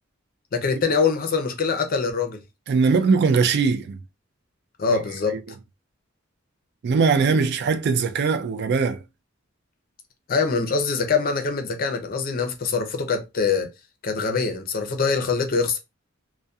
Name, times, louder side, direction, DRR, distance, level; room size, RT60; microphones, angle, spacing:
voice 1, 0.5-2.4 2.9-3.0 4.8-5.4 10.3-13.7 14.0-15.8, left 5 dB, 45° left, 0.5 m, -24 dB
voice 2, 2.7-4.0 5.3-5.4 6.8-9.0, right 5 dB, 55° right, 0.3 m, -20 dB
2.6 x 2.1 x 2.3 m
head